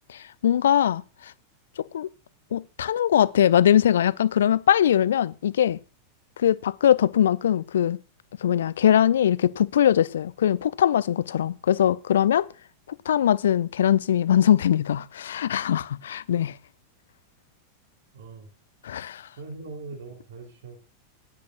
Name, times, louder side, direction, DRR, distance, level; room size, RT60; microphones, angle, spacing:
voice 1, 0.1-1.3 1.9-2.1 2.5-5.8 6.4-8.0 8.4-12.5 13.1-16.6 18.8-19.3, left 10 dB, 65° left, 0.6 m, -21 dB
voice 2, 18.1-18.5 19.4-20.8, right 3 dB, 60° right, 3.5 m, -40 dB
19.0 x 10.5 x 2.6 m
figure-of-eight pair, 90°, 0 cm